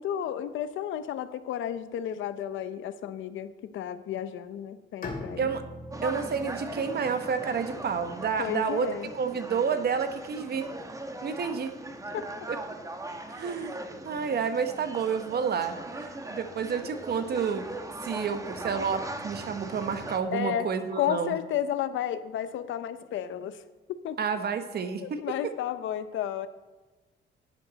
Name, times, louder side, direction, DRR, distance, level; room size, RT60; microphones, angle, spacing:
voice 1, 0.0-5.5 8.4-9.1 12.1-12.2 20.3-20.7 21.0-23.6 24.0-24.2 25.0-26.5, left 10 dB, 80° left, 12 dB, 0.7 m, -32 dB
Bowed string instrument, 5.0-8.9, left 2 dB, 45° left, 2.7 m, -43 dB
sound 1, 5.9-20.2, right 2 dB, 15° right, 1.1 m, -40 dB
voice 2, 6.0-8.9 9.1-10.7 11.2-11.7 12.5-12.6 13.3-13.8 14.0-17.7 18.0-21.3 24.2-25.5, right 6 dB, 55° right, 8 dB, 1.2 m, -30 dB
10.5 x 10.5 x 4.1 m, 1.3 s
cardioid pair, 90°, 20 cm